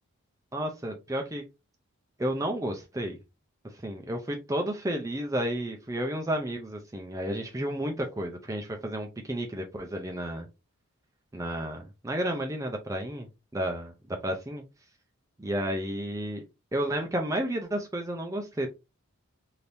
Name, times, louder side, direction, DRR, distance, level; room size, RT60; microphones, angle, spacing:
voice 1, 0.5-1.4 2.2-3.2 3.8-10.5 11.3-13.3 13.5-13.9 14.2-14.6 15.4-16.4 16.7-18.7, right 1 dB, 15° right, 0.4 m, -31 dB
3.4 x 2.8 x 2.6 m
head